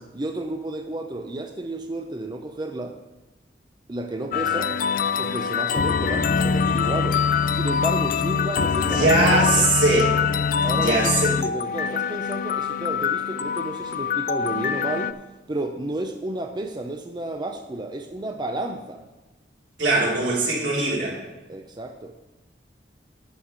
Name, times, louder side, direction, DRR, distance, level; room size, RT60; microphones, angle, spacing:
voice 1, 0.1-2.9 3.9-4.7 5.2-7.2 7.5-9.7 10.6-15.1 15.5-19.0 21.5-22.1, right 2 dB, 25° right, 4 dB, 0.6 m, -31 dB
sound 1, 4.3-15.1, left 6 dB, 50° left, 0.3 m, -24 dB
voice 2, 8.7-10.2 10.7-11.3 19.8-21.2, right 2 dB, 85° right, -5 dB, 3.9 m, -21 dB
11.5 x 5.0 x 6.6 m, 1.1 s
head